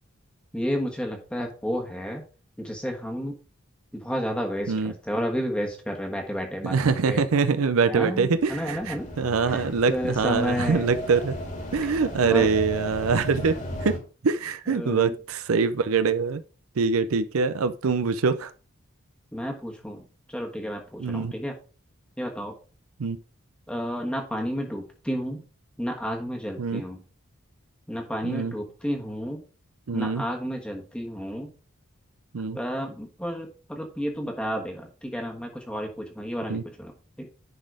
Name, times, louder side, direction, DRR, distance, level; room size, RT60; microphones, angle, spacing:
voice 1, 0.5-2.2 2.6-3.3 3.9-6.8 7.1-7.2 7.9-9.1 9.4-10.9 12.2-12.5 14.7-15.1 19.3-20.0 20.3-21.5 22.2-22.5 23.7-25.4 25.8-27.0 27.9-29.4 29.9-31.5 32.5-36.9 37.2-37.3, equal, 5° left, 1 dB, 1.3 m, -31 dB
voice 2, 6.6-11.4 11.7-14.0 14.2-16.4 16.8-18.5 21.0-21.3 23.0-23.2 26.6-26.8 28.2-28.5 29.9-30.2 32.3-32.6 36.5-36.6, right 5 dB, 85° right, 12 dB, 0.5 m, -24 dB
sound 1, 8.4-14.0, left 1 dB, 35° left, 2.0 m, -36 dB
10.5 x 4.1 x 4.8 m, 0.36 s
head